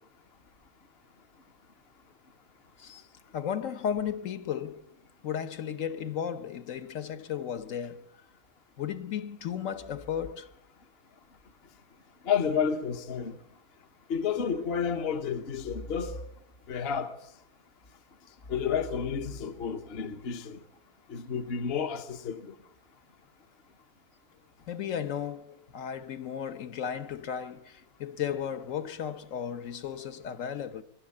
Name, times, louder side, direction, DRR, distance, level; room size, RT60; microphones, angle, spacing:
voice 1, 3.3-4.9 5.2-8.0 8.8-10.5 24.7-30.8, left 8 dB, 60° left, 1.3 m, -34 dB
voice 2, 12.2-13.3 14.1-16.2 16.7-17.1 18.5-20.6 21.1-22.5, left 7 dB, 45° left, 1.1 m, -30 dB
25.5 x 12.5 x 8.4 m
omnidirectional pair, 1.6 m